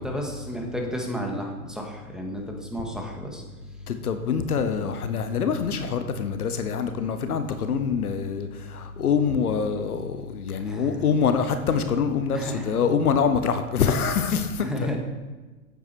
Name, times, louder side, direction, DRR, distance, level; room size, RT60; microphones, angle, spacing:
voice 1, 0.0-3.4 10.6-11.0 12.3-12.7 14.6-15.0, equal, ahead, 0 dB, 1.9 m, -32 dB
voice 2, 3.9-14.9, left 6 dB, 90° left, 9 dB, 1.0 m, -25 dB
8.8 x 8.2 x 4.6 m, 1.3 s
hypercardioid pair, 110°, 44 cm